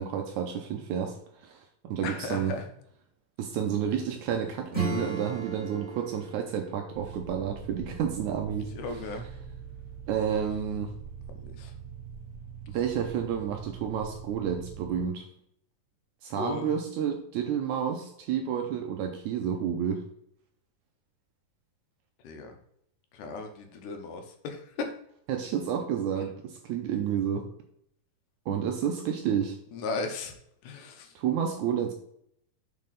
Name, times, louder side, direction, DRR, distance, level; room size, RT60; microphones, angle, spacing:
voice 1, 0.0-2.6 3.4-8.7 10.1-10.9 12.7-15.3 16.2-20.0 25.3-27.5 28.5-29.6 31.1-31.9, right 8 dB, 80° right, 4 dB, 1.8 m, -30 dB
voice 2, 2.0-2.7 8.8-9.3 10.3-10.5 11.3-11.7 16.4-16.7 22.2-22.6 23.1-24.9 29.7-30.4 30.6-31.1, left 3 dB, 75° left, 5 dB, 2.2 m, -36 dB
Acoustic guitar / Strum, 4.7-9.0, right 4 dB, 5° right, 2.3 m, -37 dB
sound 1, 6.9-15.0, right 7 dB, 50° right, 2.1 m, -43 dB
7.5 x 4.4 x 3.9 m, 0.71 s
omnidirectional pair, 3.9 m